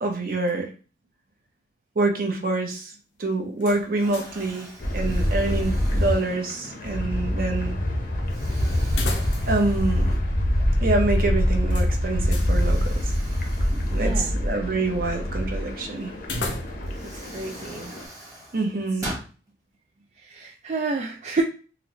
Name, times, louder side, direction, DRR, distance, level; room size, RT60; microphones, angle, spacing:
voice 1, 0.0-0.7 2.0-2.9 3.2-4.7 4.9-7.7 9.5-10.0 10.8-13.1 13.9-16.1 18.5-19.1, right 2 dB, 55° right, 3 dB, 0.7 m, -26 dB
Explosion, 3.3-3.6 4.0-6.8 7.4-7.6 8.3-10.5 10.9-11.0 12.2-14.9 16.3-16.4 16.8-19.3, right 1 dB, 20° right, 1.1 m, -42 dB
sound 1, 3.6-4.5 4.8-4.9 8.9-9.7 10.0-10.1 11.7-12.5 16.2-17.0, left 2 dB, 90° left, 0.7 m, -34 dB
sound 2, 4.8-18.0, equal, 50° left, 0.6 m, -25 dB
voice 2, 13.9-14.3 17.3-17.9 20.2-21.4, right 3 dB, 40° right, 2 dB, 0.3 m, -29 dB
4.0 x 2.1 x 2.9 m, 0.37 s
head